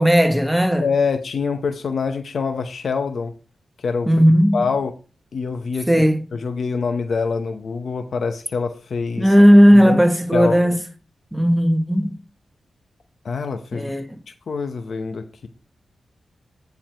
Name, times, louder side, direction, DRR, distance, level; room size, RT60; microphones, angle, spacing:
voice 1, 0.0-0.8 4.1-4.6 5.9-6.2 9.2-10.8 11.3-12.2 13.7-14.1, equal, 5° right, 1.4 m, -15 dB
voice 2, 0.8-3.3 3.8-4.1 4.5-4.9 5.3-5.9 6.3-9.3 9.7-10.0 10.3-10.6 13.2-13.9 14.5-15.5, left 5 dB, 70° left, 0.8 m, -25 dB
8.9 x 4.7 x 4.6 m
cardioid pair, 70°, 0 cm